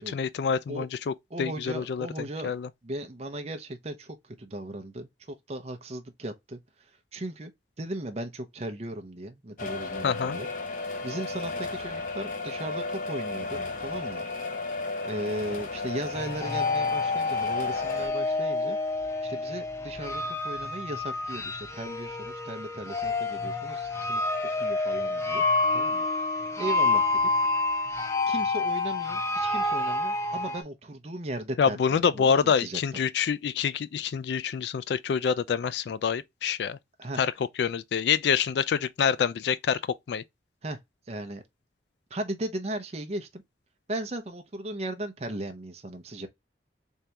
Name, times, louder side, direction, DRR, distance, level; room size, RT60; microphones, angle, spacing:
voice 1, 0.0-2.1 2.4-2.7 10.0-10.4 31.6-36.8 37.2-37.3 37.6-39.8 40.1-40.2, left 7 dB, 70° left, 0.3 m, -26 dB
voice 2, 1.3-2.5 2.8-7.5 7.8-10.5 11.0-14.2 15.0-18.8 19.2-24.2 24.5-25.4 25.7-26.1 26.4-27.2 28.3-32.8 37.0-37.2 40.6-40.8 41.1-41.4 42.1-43.4 43.9-46.3, right 1 dB, 35° right, 0.6 m, -37 dB
sound 1, 9.6-18.1, left 3 dB, 45° left, 0.8 m, -34 dB
sound 2, 16.1-30.6, left 3 dB, 15° left, 0.7 m, -28 dB
3.7 x 3.3 x 2.8 m
head